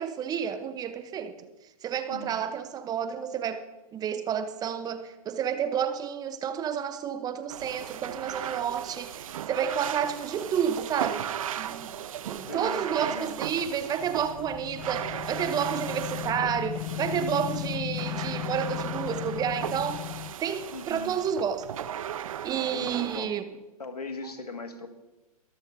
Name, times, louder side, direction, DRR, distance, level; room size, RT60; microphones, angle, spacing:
voice 1, 0.0-1.3 1.8-3.7 3.9-11.3 11.6-11.9 12.2-20.1 20.4-21.7 22.4-23.4, right 8 dB, 20° right, 0.9 m, -30 dB
voice 2, 2.1-2.4 12.5-13.3 20.7-21.1 22.7-23.4 23.8-24.9, left 3 dB, 90° left, 2.0 m, -39 dB
sound 1, 7.5-23.2, right 10 dB, 60° right, 0.8 m, -37 dB
sound 2, 14.0-20.3, left 20 dB, 25° left, 0.6 m, -36 dB
23.0 x 13.5 x 2.8 m
hypercardioid pair, 120°, 19 cm